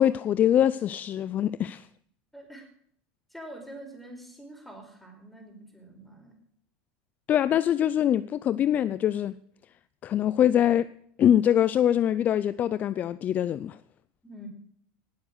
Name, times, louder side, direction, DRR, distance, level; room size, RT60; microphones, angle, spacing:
voice 1, 0.0-1.9 7.3-9.3 10.0-10.9 11.2-13.8, left 10 dB, 35° left, 0.5 m, -23 dB
voice 2, 2.3-2.7 3.3-6.3 14.2-14.5, right 1 dB, ahead, 5.2 m, -45 dB
19.5 x 8.1 x 6.5 m
supercardioid pair, 135°, 5 cm